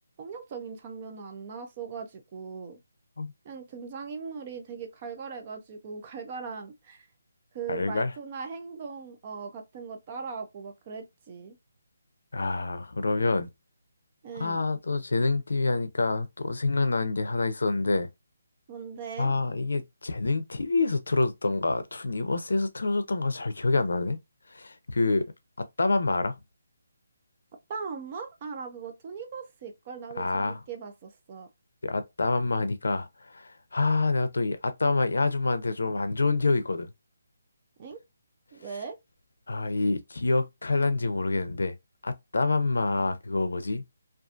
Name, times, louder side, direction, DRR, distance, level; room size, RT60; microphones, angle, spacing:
voice 1, 0.2-2.8 3.4-7.1 7.5-11.6 14.2-14.6 18.7-19.3 27.7-31.5 37.8-38.0 38.5-39.0, right 5 dB, 20° right, 0.3 m, -39 dB
voice 2, 7.7-8.1 12.3-13.5 14.4-18.1 19.2-24.2 24.5-25.2 25.6-26.3 30.2-30.6 31.8-36.9 39.5-41.8 42.0-43.8, left 3 dB, 85° left, 0.5 m, -27 dB
2.5 x 2.4 x 2.3 m
hypercardioid pair, 180°, 0 cm